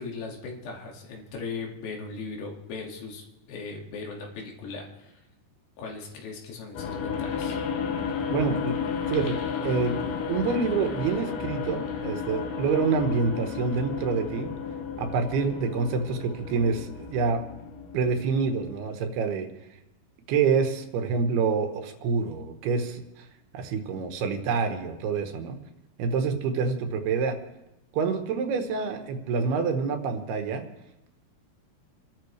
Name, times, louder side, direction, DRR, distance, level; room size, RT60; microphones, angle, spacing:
voice 1, 0.0-5.2 5.8-7.6, left 4 dB, 85° left, -1 dB, 4.3 m, -38 dB
sound 1, 6.7-18.7, left 6 dB, 65° left, 2.3 m, -33 dB
voice 2, 8.3-8.8 9.1-10.0 10.3-14.5 15.0-17.4 17.9-19.5 20.3-23.3 23.5-25.6 26.0-27.4 27.9-30.6, right 5 dB, 80° right, 6 dB, 3.2 m, -27 dB
28.5 x 12.0 x 3.3 m, 0.93 s
omnidirectional pair, 4.6 m